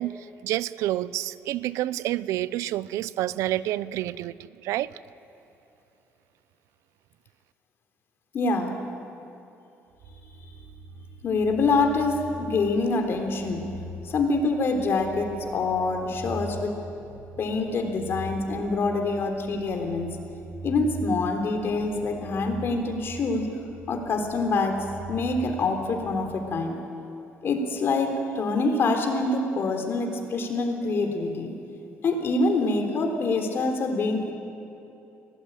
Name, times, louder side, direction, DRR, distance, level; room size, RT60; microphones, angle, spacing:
voice 1, 0.0-4.9, right 14 dB, 85° right, 18 dB, 0.6 m, -29 dB
voice 2, 8.3-8.7 10.4-10.5 11.2-13.7 14.0-16.7 17.4-20.2 20.6-23.5 23.9-26.8 27.4-31.5 32.0-34.3, left 3 dB, 50° left, 4 dB, 3.6 m, -25 dB
sound 1, 9.9-26.8, right 1 dB, 60° right, 3.8 m, -42 dB
23.5 x 18.0 x 9.0 m, 2.9 s
cardioid pair, 115°, 5 cm